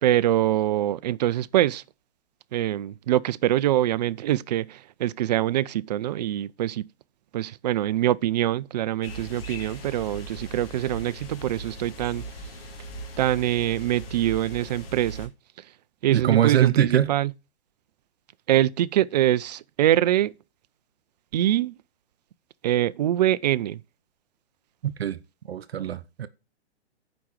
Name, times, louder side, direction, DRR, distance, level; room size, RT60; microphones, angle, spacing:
voice 1, 0.0-1.8 2.5-6.9 7.3-12.2 13.2-15.3 16.0-17.3 18.5-20.3 21.3-21.8 22.6-23.8, right 13 dB, 40° right, 0.4 m, -24 dB
sound 1, 9.0-15.3, right 1 dB, 60° left, 2.4 m, -39 dB
voice 2, 16.1-17.1 24.8-25.2 25.5-26.3, right 10 dB, 65° right, 0.8 m, -22 dB
7.5 x 5.1 x 7.4 m
hypercardioid pair, 130°, 33 cm